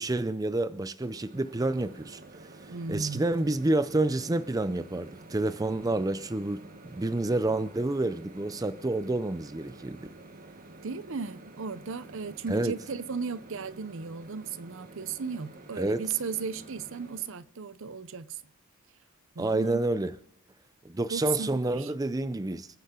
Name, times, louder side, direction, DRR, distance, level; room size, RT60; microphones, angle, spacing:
voice 1, 0.0-2.2 2.6-10.1 12.5-12.7 15.8-16.0 19.4-20.2 20.8-22.7, right 2 dB, 15° right, 0.4 m, -29 dB
Microwave oven, 1.0-17.3, right 2 dB, 40° right, 1.1 m, -50 dB
voice 2, 2.7-3.2 10.8-18.4 19.4-19.8 21.1-21.9, right 5 dB, 60° right, 0.6 m, -35 dB
26.5 x 9.9 x 3.7 m
head